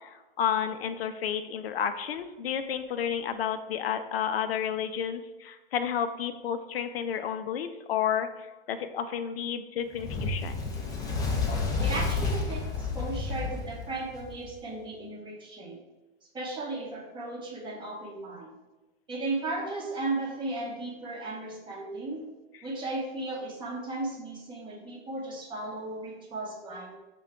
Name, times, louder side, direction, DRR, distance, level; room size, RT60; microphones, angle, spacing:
voice 1, 0.0-10.6, left 8 dB, 75° left, 9 dB, 0.5 m, -31 dB
Fire, 9.9-14.5, left 3 dB, 15° left, 0.4 m, -30 dB
voice 2, 11.8-15.8 16.3-18.5 19.1-22.2 22.6-27.0, right 2 dB, 15° right, -1 dB, 0.7 m, -35 dB
5.5 x 2.2 x 3.6 m, 1.1 s
hypercardioid pair, 125°, 30 cm